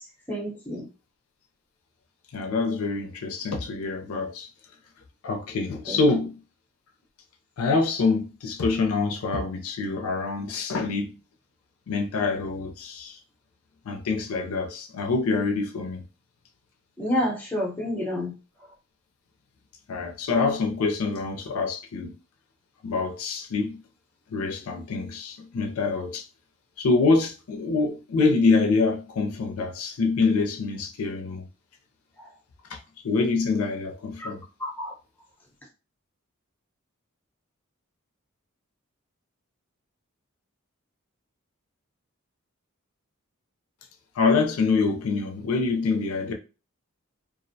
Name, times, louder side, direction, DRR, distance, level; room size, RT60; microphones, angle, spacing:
voice 1, 0.3-0.9 5.9-6.0 17.0-18.3 34.2-34.3 34.6-34.9, left 1 dB, 10° left, 0.6 m, -28 dB
voice 2, 2.3-4.5 5.2-6.4 7.6-11.1 11.9-13.2 13.9-16.0 19.9-22.1 22.8-23.8 24.3-26.2 26.8-31.4 32.7-32.8 33.0-34.4 44.2-46.3, left 4 dB, 80° left, 0.4 m, -25 dB
2.4 x 2.0 x 2.6 m
head